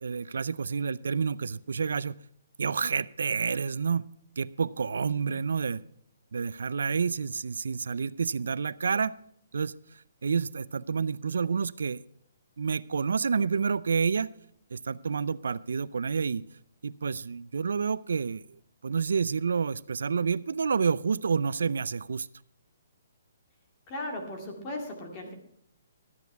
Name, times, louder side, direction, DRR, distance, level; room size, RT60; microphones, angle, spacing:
voice 1, 0.0-2.2 2.6-4.0 4.4-5.8 6.3-9.2 9.5-9.8 10.2-12.0 12.6-14.3 14.7-16.4 16.8-18.4 18.8-22.3, right 5 dB, 85° right, 19 dB, 0.4 m, -29 dB
voice 2, 5.1-5.4 23.9-25.3, left 1 dB, 20° left, 1 dB, 2.1 m, -37 dB
13.0 x 9.3 x 4.6 m, 0.67 s
hypercardioid pair, 175°, 0 cm